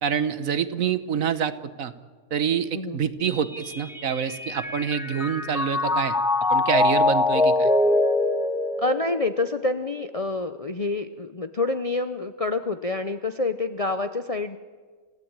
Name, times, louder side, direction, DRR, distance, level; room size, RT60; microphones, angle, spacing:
voice 1, 0.0-1.9 2.3-6.1 6.5-7.7, right 7 dB, 65° right, 12 dB, 1.4 m, -26 dB
Mallet percussion, 3.2-9.7, left 2 dB, ahead, 1.5 m, -24 dB
voice 2, 8.8-14.6, left 3 dB, 35° left, 9 dB, 0.6 m, -27 dB
28.0 x 16.0 x 8.8 m, 1.5 s
omnidirectional pair, 1.5 m